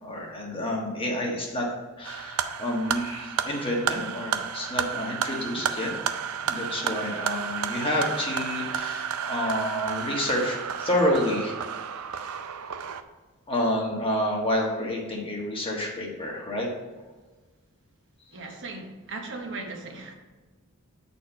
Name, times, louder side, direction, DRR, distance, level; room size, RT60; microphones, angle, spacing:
voice 1, 0.0-1.7 2.0-5.9 6.4-11.6 13.5-16.7, left 1 dB, 25° left, -1 dB, 1.3 m, -29 dB
sound 1, 2.0-13.0, right 7 dB, 75° right, 0.5 m, -32 dB
voice 2, 18.3-20.1, right 3 dB, 55° right, 2 dB, 1.0 m, -37 dB
8.2 x 4.4 x 4.4 m, 1.3 s
head